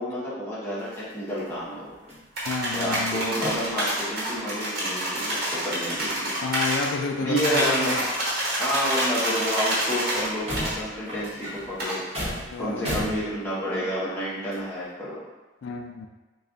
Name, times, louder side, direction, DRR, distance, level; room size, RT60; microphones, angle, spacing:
voice 1, 0.0-2.0 2.7-6.3 7.2-8.1 8.6-12.0 12.6-15.2, equal, 10° left, -9 dB, 0.9 m, -30 dB
sound 1, 0.8-1.6 1.9-2.7 3.4-3.9 4.3-4.6 5.0-5.1 5.4-6.9 7.7-8.8 9.3-9.4 9.8-9.9 10.1-13.8 14.5-14.6, equal, 30° right, 1.0 m, -37 dB
sound 2, 2.4-6.9 7.4-10.3 10.6-10.7 11.8-12.0, right 1 dB, 50° right, 1.1 m, -27 dB
voice 2, 2.5-3.3 6.4-8.0 12.4-13.2 15.6-16.1, left 4 dB, 80° left, 3 dB, 0.3 m, -30 dB
3.2 x 2.3 x 3.7 m, 1.2 s
head